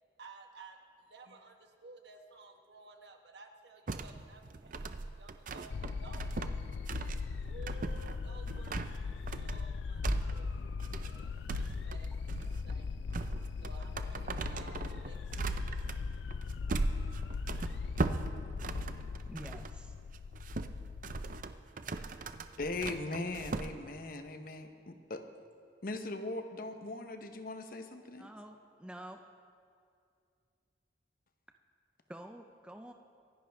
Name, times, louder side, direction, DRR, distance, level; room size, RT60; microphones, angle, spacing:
voice 1, 0.2-6.3 7.4-10.6 11.0-12.3 12.6-13.0 13.6-15.9, right 3 dB, 65° right, 4 dB, 1.3 m, -55 dB
sound 1, 3.9-19.8 20.1-23.7, right 3 dB, 50° right, 0.6 m, -39 dB
sound 2, 5.7-21.4, left 5 dB, 80° left, 0.4 m, -39 dB
voice 2, 19.3-20.0 28.2-29.2 32.1-32.9, right 1 dB, 5° right, 4 dB, 0.5 m, -48 dB
voice 3, 22.6-25.2 25.8-28.3, left 2 dB, 55° left, 7 dB, 1.0 m, -39 dB
26.0 x 10.5 x 3.5 m, 2.4 s
head